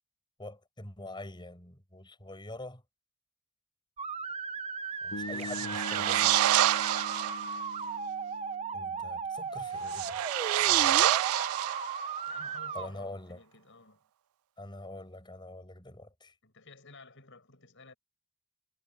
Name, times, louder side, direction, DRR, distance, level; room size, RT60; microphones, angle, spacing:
voice 1, 0.4-2.8 5.0-6.4 8.7-10.2 10.6-11.1 12.7-13.4 14.6-16.3, left 1 dB, 20° left, 7.7 m, -45 dB
sound 1, 4.0-12.9, right 5 dB, 30° right, 1.0 m, -37 dB
Bass guitar, 5.1-9.2, left 2 dB, 90° left, 1.2 m, -43 dB
sound 2, 5.4-7.5 9.9-12.2, right 13 dB, 85° right, 0.3 m, -27 dB
voice 2, 12.3-14.1 16.4-17.9, left 3 dB, 60° left, 7.1 m, -53 dB
head